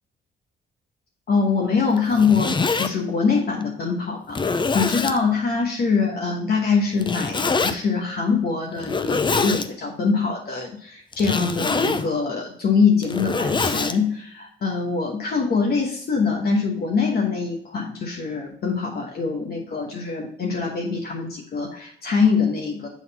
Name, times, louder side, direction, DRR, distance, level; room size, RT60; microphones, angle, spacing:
voice 1, 1.3-22.9, left 5 dB, 50° left, 0 dB, 1.2 m, -23 dB
Zipper (clothing), 2.0-2.9 3.6-3.7 4.3-5.2 7.0-7.7 8.8-9.7 11.1-12.1 12.9-14.0, left 4 dB, 25° left, 0.5 m, -24 dB
7.2 x 3.8 x 4.1 m, 0.65 s
cardioid pair, 90°, 20 cm